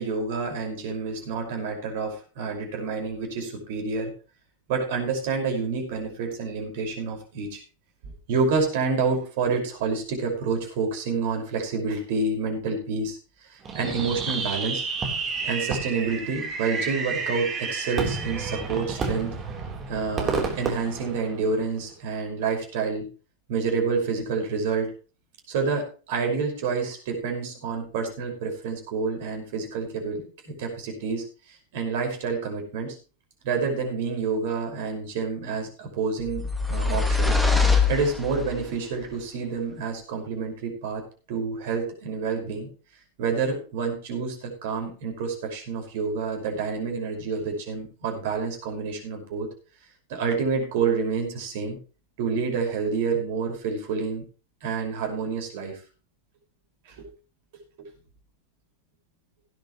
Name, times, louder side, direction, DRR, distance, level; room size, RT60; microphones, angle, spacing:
voice 1, 0.0-4.1 4.7-7.6 8.3-13.2 13.5-14.8 15.4-19.4 19.9-23.1 23.5-24.9 25.5-33.0 33.4-37.4 37.9-41.0 41.3-42.7 43.2-49.5 50.1-51.8 52.2-54.2 54.6-55.8 57.0-57.1 57.8-57.9, right 4 dB, 50° right, 2 dB, 5.4 m, -28 dB
Fireworks, 13.7-21.8, right 4 dB, 25° right, 3.6 m, -30 dB
sound 1, 36.3-38.7, left 4 dB, ahead, 2.1 m, -23 dB
17.0 x 10.5 x 3.1 m, 0.35 s
figure-of-eight pair, 90°, 0 cm